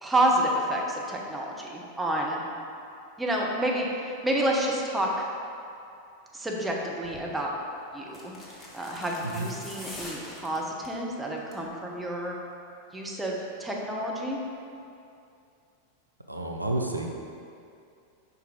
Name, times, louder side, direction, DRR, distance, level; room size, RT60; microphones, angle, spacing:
voice 1, 0.0-2.4 3.2-5.3 6.3-7.5 7.9-8.3 8.7-12.3 12.9-14.4, right 1 dB, 10° right, -2 dB, 0.9 m, -29 dB
sound 1, 7.0-7.3 8.1-11.0 11.4-11.7 12.0-12.1, left 1 dB, 15° left, 1.2 m, -44 dB
voice 2, 16.3-17.1, right 2 dB, 85° right, 1 dB, 0.5 m, -30 dB
5.2 x 4.5 x 4.9 m, 2.5 s
figure-of-eight pair, 90°, 0 cm